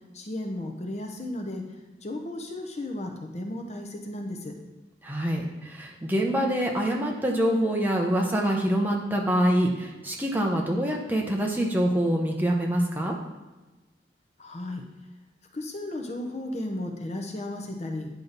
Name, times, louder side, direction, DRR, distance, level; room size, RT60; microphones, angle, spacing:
voice 1, 0.1-1.6 2.0-4.5 14.4-14.8 15.5-18.1, left 1 dB, 40° left, 3 dB, 0.8 m, -34 dB
voice 2, 5.0-13.1, equal, 10° right, 0 dB, 0.9 m, -25 dB
9.3 x 5.7 x 4.0 m, 1.1 s
head